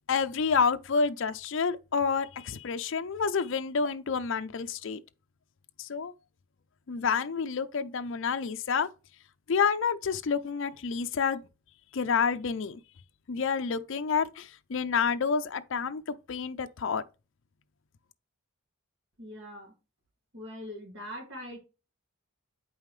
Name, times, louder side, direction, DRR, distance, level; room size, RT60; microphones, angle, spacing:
voice 1, 0.1-5.0 5.8-6.1 6.9-8.9 9.5-11.4 11.9-12.8 13.3-17.0, left 5 dB, 60° left, 0.5 m, -29 dB
voice 2, 19.2-19.7 20.3-21.6, equal, 55° right, 2.4 m, -42 dB
8.2 x 5.5 x 3.2 m
head